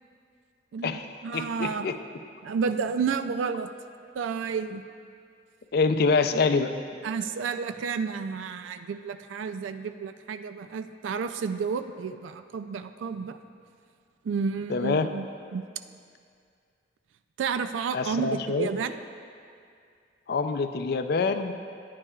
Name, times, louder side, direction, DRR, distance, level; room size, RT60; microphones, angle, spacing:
voice 1, 0.7-1.9 2.4-3.7 4.2-4.8 7.0-13.4 14.2-15.3 15.5-15.7 17.4-19.0, right 5 dB, 90° right, 9 dB, 0.3 m, -31 dB
voice 2, 1.3-2.0 5.7-6.7 14.7-15.1 17.9-18.7 20.3-21.5, left 4 dB, 55° left, 8 dB, 0.4 m, -25 dB
12.5 x 9.5 x 2.3 m, 2.3 s
head